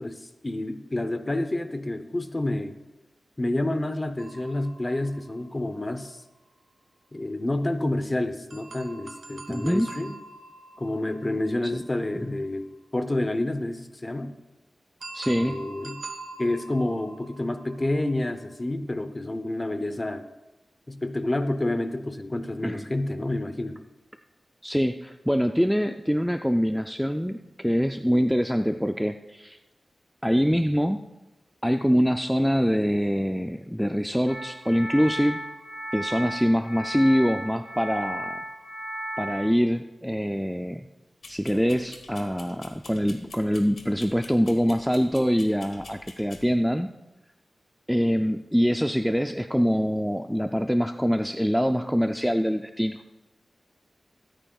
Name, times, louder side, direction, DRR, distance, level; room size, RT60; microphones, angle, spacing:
voice 1, 0.0-2.7 3.4-6.2 7.1-10.1 10.8-12.7 12.9-14.3 15.4-16.0 16.4-20.2 20.9-23.8, left 1 dB, 25° left, 9 dB, 0.7 m, -29 dB
sound 1, 4.2-5.9 8.5-12.4 15.0-18.5, right 3 dB, 70° right, 1.0 m, -44 dB
voice 2, 9.5-9.9 11.6-11.8 15.1-15.6 22.6-22.9 24.6-29.6 30.2-31.1 31.6-35.4 35.9-38.4 39.2-40.8 41.3-46.9 47.9-53.0, equal, ahead, 6 dB, 0.3 m, -24 dB
sound 2, 34.3-39.5, equal, 60° left, 3.1 m, -35 dB
sound 3, 41.2-46.5, left 3 dB, 80° left, 1.4 m, -48 dB
24.5 x 9.0 x 2.3 m, 1.0 s
wide cardioid pair, 120°, 0 cm